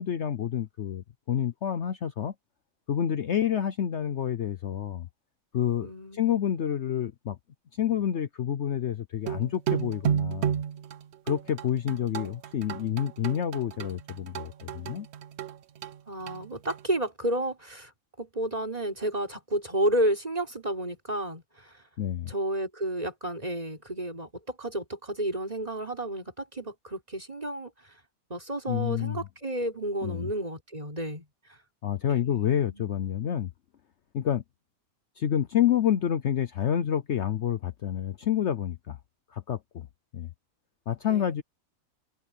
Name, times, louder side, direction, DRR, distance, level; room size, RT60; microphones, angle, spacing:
voice 1, 0.0-2.3 2.9-5.1 5.5-7.4 7.7-10.6 11.3-15.1 22.0-22.3 28.7-29.2 30.0-30.3 31.8-33.5 34.1-34.4 35.2-39.0 39.3-39.9 40.1-40.3 40.9-41.4, left 9 dB, 60° left, 1.0 m, -28 dB
voice 2, 5.8-6.6 11.9-12.3 16.1-17.9 18.2-21.7 22.3-27.7 28.3-31.3 32.2-33.0 41.1-41.4, right 1 dB, 25° right, 4.0 m, -31 dB
sound 1, 9.3-16.8, right 9 dB, 60° right, 0.8 m, -32 dB
omnidirectional pair, 1.5 m